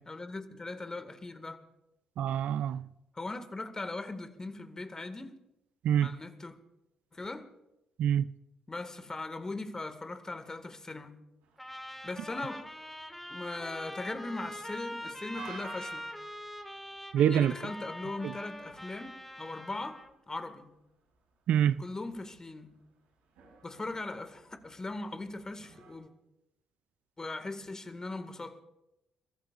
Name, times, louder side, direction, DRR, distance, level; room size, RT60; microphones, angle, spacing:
voice 1, 0.1-1.7 3.1-5.4 6.0-6.6 7.1-7.5 8.7-11.2 12.0-12.7 13.3-16.1 17.3-19.1 19.4-20.7 21.8-22.8 23.6-26.1 27.2-28.6, left 2 dB, 25° left, 1.9 m, -39 dB
voice 2, 2.2-2.9 5.8-6.2 8.0-8.3 17.1-17.5 18.2-18.3 21.5-21.8, right 9 dB, 70° right, 0.4 m, -26 dB
sound 1, 11.4-26.0, right 5 dB, 90° right, 5.2 m, -56 dB
Trumpet, 11.6-20.1, left 1 dB, 5° left, 1.9 m, -44 dB
30.0 x 14.5 x 2.5 m
supercardioid pair, 55°, 2 cm